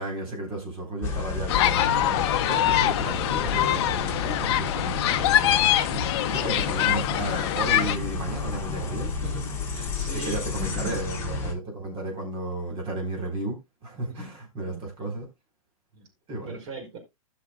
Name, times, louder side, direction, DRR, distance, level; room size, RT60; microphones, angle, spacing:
voice 1, 0.0-9.2 10.0-15.3 16.3-16.6, right 2 dB, 25° right, 3.9 m, -33 dB
sound 1, 1.0-11.5, left 4 dB, 15° left, 4.1 m, -32 dB
sound 2, 1.5-8.0, left 12 dB, 45° left, 0.7 m, -24 dB
voice 2, 9.2-11.1 14.1-14.8 15.9-16.1 16.4-17.0, right 3 dB, 50° right, 4.7 m, -39 dB
17.0 x 6.1 x 2.3 m
hypercardioid pair, 130°, 19 cm